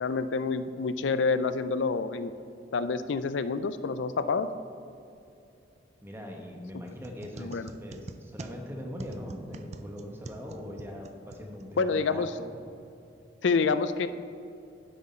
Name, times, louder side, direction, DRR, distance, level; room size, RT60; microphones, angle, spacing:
voice 1, 0.0-2.3 2.7-4.5 7.4-7.7 11.8-12.3 13.4-14.1, left 4 dB, 90° left, 12 dB, 0.4 m, -27 dB
voice 2, 6.0-12.5, equal, 15° right, 1 dB, 1.0 m, -41 dB
sound 1, 6.8-12.0, right 2 dB, 35° right, 0.4 m, -46 dB
9.6 x 7.8 x 4.3 m, 2.7 s
head